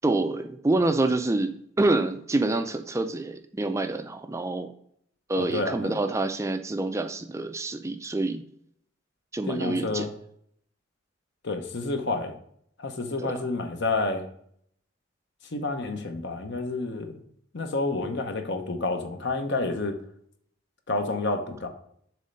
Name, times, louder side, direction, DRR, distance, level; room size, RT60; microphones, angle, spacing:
voice 1, 0.0-4.7 5.3-8.4 9.3-10.1 13.2-13.5, right 2 dB, 15° right, 8 dB, 0.4 m, -27 dB
voice 2, 5.4-6.0 9.5-10.1 11.4-12.3 12.8-14.2 15.5-17.2 17.5-20.0 20.9-21.7, left 3 dB, 60° left, 6 dB, 0.9 m, -29 dB
7.4 x 3.2 x 5.3 m, 0.67 s
head